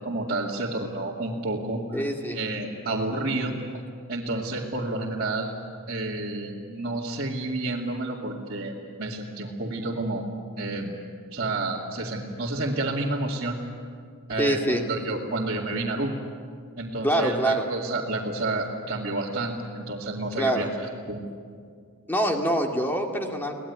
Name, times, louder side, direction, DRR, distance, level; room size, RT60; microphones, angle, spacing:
voice 1, 0.0-2.0 2.3-3.5 4.1-5.5 5.9-10.3 10.6-10.9 11.3-13.6 14.3-16.1 16.8-21.2, right 2 dB, 45° right, -6 dB, 2.4 m, -30 dB
voice 2, 1.9-2.4 14.4-14.8 17.0-17.6 20.3-20.7 22.1-23.5, right 1 dB, 10° left, 2 dB, 2.2 m, -25 dB
24.0 x 18.5 x 9.7 m, 2.2 s
head